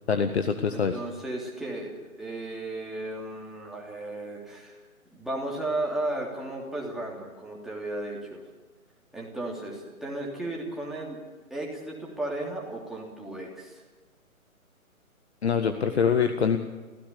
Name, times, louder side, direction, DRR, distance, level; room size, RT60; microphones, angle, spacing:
voice 1, 0.1-1.0 15.4-16.6, left 6 dB, 50° left, 7 dB, 1.6 m, -24 dB
voice 2, 0.7-1.9 2.2-4.8 5.1-8.4 9.1-11.2 11.5-13.8, right 2 dB, ahead, -4 dB, 3.1 m, -34 dB
26.0 x 16.5 x 6.9 m, 1.3 s
figure-of-eight pair, 135°, 43 cm